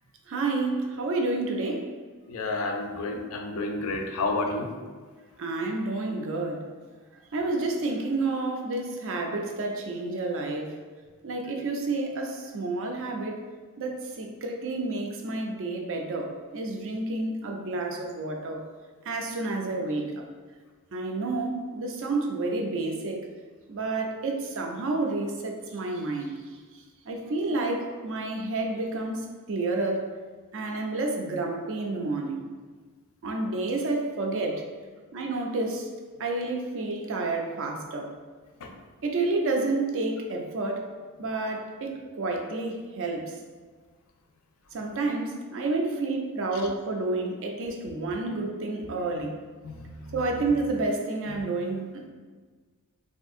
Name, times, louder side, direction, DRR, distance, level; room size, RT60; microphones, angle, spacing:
voice 1, 0.3-1.9 5.4-6.7 7.3-10.8 11.2-13.4 13.8-18.6 19.0-20.2 20.9-23.2 23.7-26.3 27.0-30.0 30.5-32.4 33.2-34.7 35.1-35.9 36.2-38.1 39.0-40.9 41.2-43.2 44.7-49.4 50.1-52.1, right 2 dB, 60° right, 2 dB, 0.4 m, -30 dB
voice 2, 2.3-4.7 38.6-38.7 49.6-50.5 51.3-51.4, left 2 dB, 65° left, 3 dB, 0.4 m, -31 dB
3.6 x 2.6 x 2.4 m, 1.5 s
head